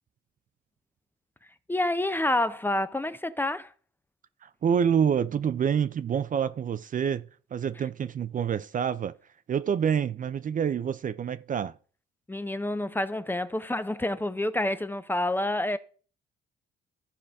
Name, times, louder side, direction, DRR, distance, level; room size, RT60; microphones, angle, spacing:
voice 1, 1.7-3.7 12.3-15.8, left 1 dB, 10° left, 0.6 m, -28 dB
voice 2, 4.4-9.1 9.5-11.8, right 8 dB, 40° right, 0.5 m, -27 dB
14.0 x 4.9 x 3.5 m
cardioid pair, 90°, 20 cm